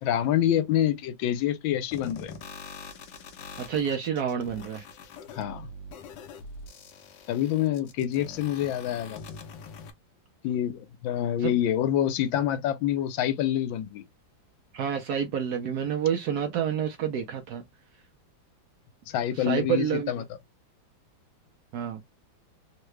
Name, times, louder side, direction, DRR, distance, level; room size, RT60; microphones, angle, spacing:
voice 1, 0.0-2.3 5.3-5.7 7.3-9.2 10.4-14.0 19.1-20.2, left 11 dB, 90° left, 1.4 m, -27 dB
sound 1, 1.9-9.9, left 4 dB, 75° left, 1.3 m, -44 dB
voice 2, 3.6-4.8 11.4-11.5 14.7-17.6 19.4-20.1 21.7-22.0, right 8 dB, 70° right, 0.9 m, -28 dB
3.7 x 2.2 x 3.1 m
omnidirectional pair, 2.1 m